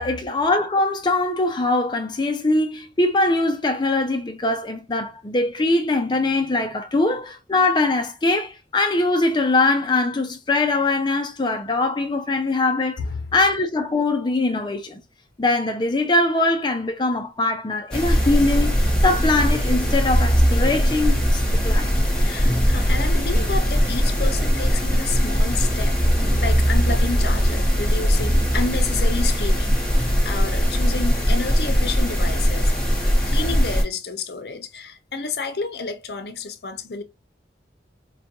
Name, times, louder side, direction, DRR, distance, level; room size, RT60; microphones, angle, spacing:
voice 1, 0.0-13.0 13.3-15.0 15.4-18.7 19.0-21.9, left 2 dB, 25° left, 0.4 m, -22 dB
sound 1, 17.9-33.8, equal, 5° left, 1.0 m, -20 dB
voice 2, 22.2-32.7 33.2-37.0, left 4 dB, 65° left, 0.7 m, -30 dB
4.8 x 2.2 x 2.9 m
head